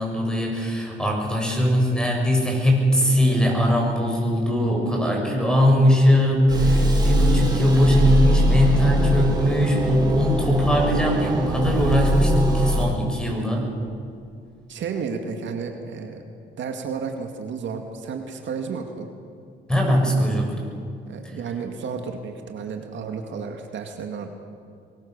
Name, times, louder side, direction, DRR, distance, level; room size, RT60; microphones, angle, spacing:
voice 1, 0.0-13.7 19.7-20.6, equal, 5° left, 0 dB, 7.2 m, -20 dB
sound 1, 6.5-12.9, equal, 20° right, 5.1 m, -22 dB
voice 2, 14.7-16.2 16.6-19.1 21.1-24.3, right 5 dB, 70° right, 4 dB, 2.2 m, -32 dB
23.0 x 21.0 x 6.9 m, 2.4 s
cardioid pair, 90°, 20 cm